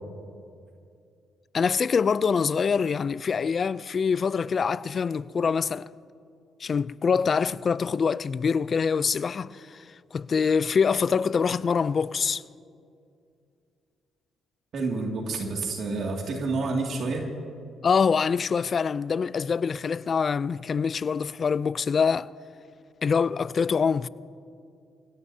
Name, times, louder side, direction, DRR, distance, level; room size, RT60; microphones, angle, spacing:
voice 1, 1.5-5.9 6.6-9.8 10.1-12.4 17.8-22.3 23.0-24.1, left 6 dB, 45° left, 0.4 m, -25 dB
voice 2, 14.7-17.3, right 3 dB, 65° right, 2.3 m, -29 dB
26.5 x 17.0 x 2.8 m
cardioid pair, 90°, 0 cm